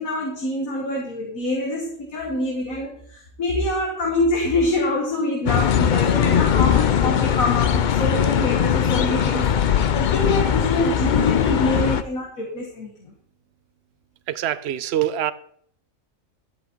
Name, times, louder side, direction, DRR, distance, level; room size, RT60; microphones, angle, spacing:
voice 1, 0.0-12.9, left 2 dB, 80° left, 2.1 m, -25 dB
sound 1, 5.5-12.0, left 8 dB, 60° left, 0.5 m, -20 dB
voice 2, 14.3-15.3, right 11 dB, 60° right, 0.7 m, -24 dB
12.0 x 8.2 x 4.5 m
omnidirectional pair, 1.4 m